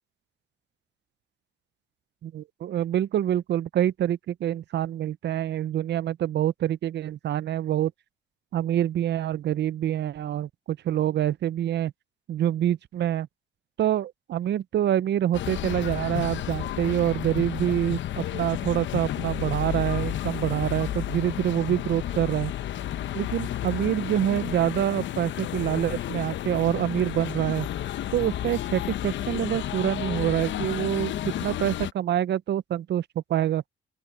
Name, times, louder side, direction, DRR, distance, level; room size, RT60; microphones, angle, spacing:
voice 1, 2.2-7.9 8.5-11.9 12.3-13.3 13.8-22.5 23.1-27.7 28.1-33.0 33.3-33.6, right 11 dB, 60° right, 0.6 m, -26 dB
sound 1, 15.3-31.9, left 12 dB, 70° left, 0.9 m, -31 dB
open air
cardioid pair, 90°, 20 cm